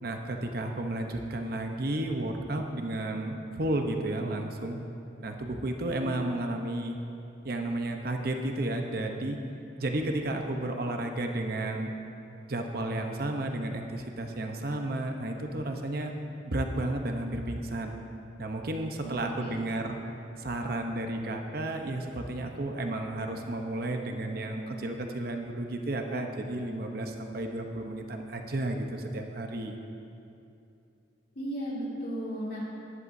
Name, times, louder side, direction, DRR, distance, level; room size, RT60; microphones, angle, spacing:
voice 1, 0.0-4.9 5.2-7.0 7.4-9.4 9.8-11.9 12.5-16.1 16.4-17.9 18.4-20.0 20.4-29.8, right 1 dB, 55° right, 3 dB, 0.8 m, -32 dB
voice 2, 19.0-19.6 31.3-32.7, equal, 55° left, -6 dB, 2.8 m, -35 dB
15.0 x 11.0 x 2.7 m, 2.6 s
head